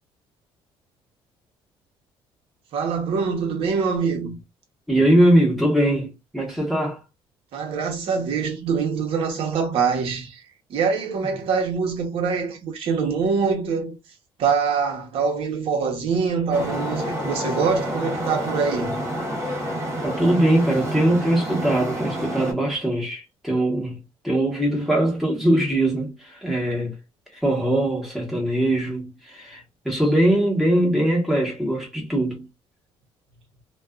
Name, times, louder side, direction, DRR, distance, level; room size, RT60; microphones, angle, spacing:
voice 1, 2.7-4.4 7.5-10.4 10.7-13.9 14.4-19.1, right 5 dB, 65° right, 1.0 m, -24 dB
voice 2, 4.9-7.0 20.0-26.9 27.3-32.5, right 1 dB, ahead, 1.1 m, -21 dB
Traffic noise roadway noise, 16.5-22.5, right 1 dB, 30° right, 1.1 m, -28 dB
2.5 x 2.3 x 2.3 m
cardioid pair, 130°, 10 cm